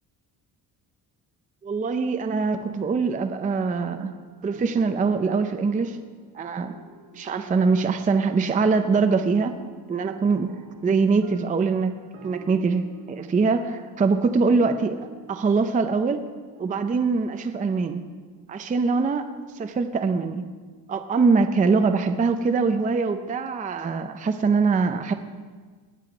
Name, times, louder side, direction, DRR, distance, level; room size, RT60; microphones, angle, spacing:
voice 1, 1.6-4.1 4.4-6.0 6.3-6.7 7.1-9.5 9.9-10.5 10.8-11.9 12.2-16.2 16.6-18.0 18.5-19.3 19.6-20.4 20.9-25.1, right 4 dB, 20° right, 8 dB, 0.5 m, -23 dB
sound 1, 2.6-19.4, right 6 dB, 75° right, 2.4 m, -50 dB
20.0 x 7.7 x 5.0 m, 1.4 s
cardioid pair, 165°, 42 cm